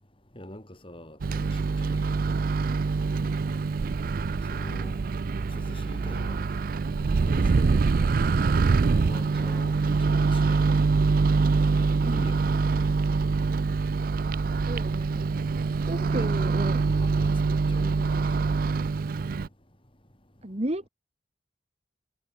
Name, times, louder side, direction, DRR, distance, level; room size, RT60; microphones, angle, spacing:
voice 1, 0.4-2.1 4.5-4.9 5.5-6.4 7.3-8.3 9.0-10.8 11.7-12.9 15.9-18.2, left 1 dB, 30° left, 6.8 m, -44 dB
Microwave oven, 1.2-19.5, right 4 dB, 55° right, 0.4 m, -25 dB
voice 2, 12.0-12.4 14.7-15.3 15.8-16.8 20.4-20.9, right 1 dB, 40° right, 2.2 m, -34 dB
head